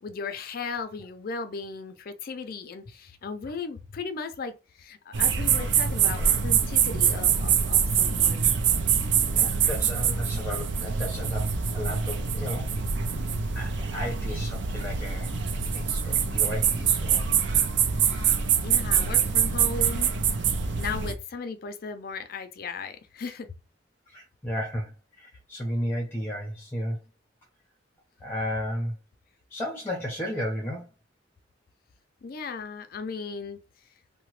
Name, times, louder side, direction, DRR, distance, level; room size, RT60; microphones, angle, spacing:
voice 1, 0.0-8.5 18.0-20.1 20.7-23.5 32.2-33.6, left 4 dB, 50° left, 0.4 m, -36 dB
sound 1, 5.1-21.1, right 7 dB, 65° right, 0.5 m, -25 dB
voice 2, 9.3-12.7 13.5-17.2 24.1-27.0 28.2-29.0 29.5-30.9, equal, 10° left, 0.7 m, -33 dB
2.8 x 2.1 x 3.0 m
head